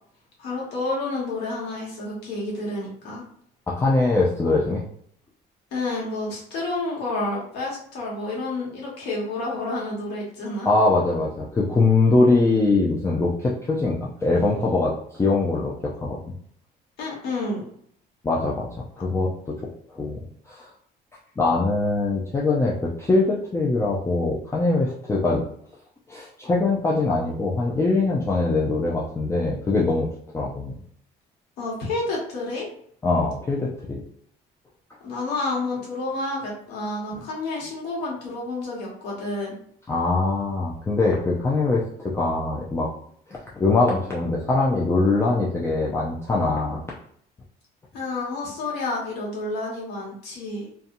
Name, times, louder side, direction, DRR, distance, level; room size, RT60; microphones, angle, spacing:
voice 1, 0.4-3.2 5.7-10.7 17.0-17.6 31.6-32.7 35.0-39.5 47.9-50.7, left 2 dB, 85° left, -3 dB, 1.2 m, -29 dB
voice 2, 3.7-4.8 10.7-16.2 18.2-18.7 19.0-19.6 20.0-20.2 20.5-20.7 21.4-25.4 26.1-30.1 30.3-30.7 33.0-34.0 39.9-42.9 43.3-46.8, left 3 dB, 15° left, -4 dB, 0.4 m, -22 dB
2.7 x 2.3 x 2.5 m, 0.63 s
cardioid pair, 110°, 17 cm